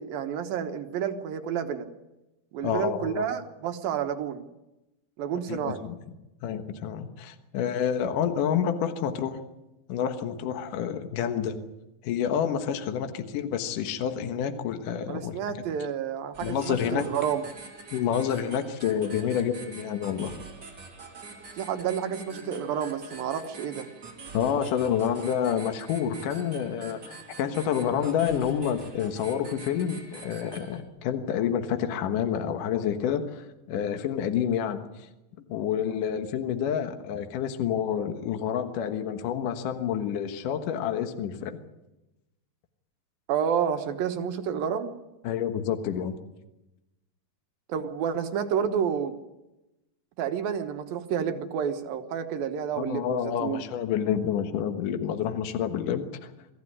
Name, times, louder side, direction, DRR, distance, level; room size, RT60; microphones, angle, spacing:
voice 1, 0.0-1.9 2.5-4.4 5.2-5.8 15.1-17.5 21.6-23.9 43.3-44.9 47.7-49.2 50.2-53.6, right 8 dB, 80° right, 6 dB, 3.1 m, -30 dB
voice 2, 2.6-3.3 5.5-6.0 6.4-9.4 9.9-11.6 12.0-15.6 16.4-17.1 17.9-20.3 24.3-35.1 35.5-41.6 45.2-46.2 52.8-56.3, left 8 dB, 70° left, 7 dB, 2.8 m, -28 dB
sound 1, 16.3-30.8, right 3 dB, 30° right, 3.5 m, -45 dB
24.5 x 15.0 x 9.8 m, 0.99 s
omnidirectional pair, 4.1 m